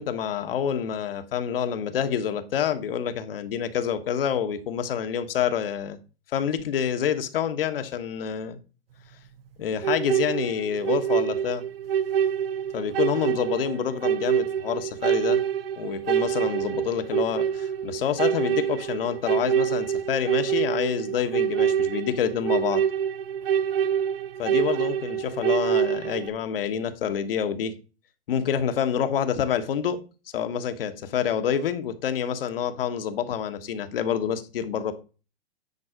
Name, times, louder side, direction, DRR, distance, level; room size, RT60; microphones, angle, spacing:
voice 1, 0.0-6.0 6.3-8.6 9.6-11.6 12.7-15.4 15.8-22.8 24.4-27.7 28.3-30.0 30.3-34.9, left 8 dB, 65° left, 1.3 m, -27 dB
sound 1, 9.8-26.3, right 9 dB, 70° right, 0.8 m, -26 dB
9.6 x 4.0 x 4.9 m
hypercardioid pair, 135°, 31 cm